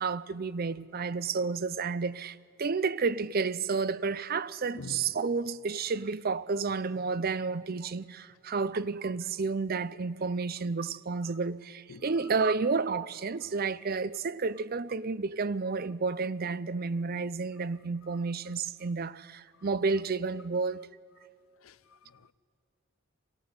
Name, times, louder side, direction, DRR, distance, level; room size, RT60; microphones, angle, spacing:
voice 1, 0.0-20.8, right 4 dB, 45° right, 0.5 m, -31 dB
voice 2, 4.7-5.1 11.9-12.1 18.0-18.2 21.6-22.3, left 3 dB, 90° left, 0.7 m, -47 dB
23.0 x 17.0 x 9.5 m
head